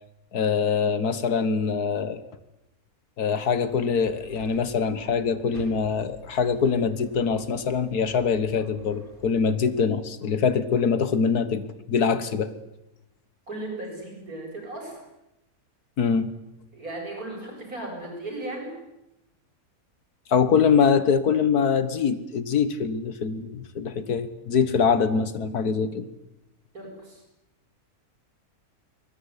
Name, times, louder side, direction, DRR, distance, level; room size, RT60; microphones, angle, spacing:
voice 1, 0.3-2.2 3.2-12.5 16.0-16.3 20.3-26.1, left 6 dB, 90° left, 13 dB, 2.0 m, -24 dB
sound 1, 3.7-9.7, equal, 35° left, 5.8 m, -48 dB
voice 2, 13.5-15.0 16.7-18.7 26.7-27.2, right 2 dB, 70° right, 0 dB, 8.7 m, -36 dB
23.5 x 20.5 x 9.7 m, 0.92 s
omnidirectional pair, 1.6 m